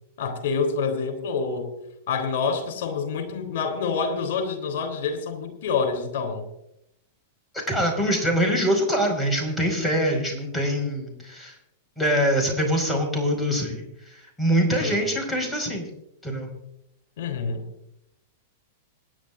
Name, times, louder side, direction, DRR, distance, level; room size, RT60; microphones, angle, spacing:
voice 1, 0.2-1.7 2.1-6.4 14.7-15.1 17.2-17.6, left 5 dB, 60° left, 6 dB, 3.5 m, -27 dB
voice 2, 7.5-11.6 12.0-15.9 16.2-16.5, equal, 5° left, 1 dB, 5.3 m, -24 dB
26.5 x 10.5 x 2.6 m, 0.81 s
figure-of-eight pair, 100°, 0 cm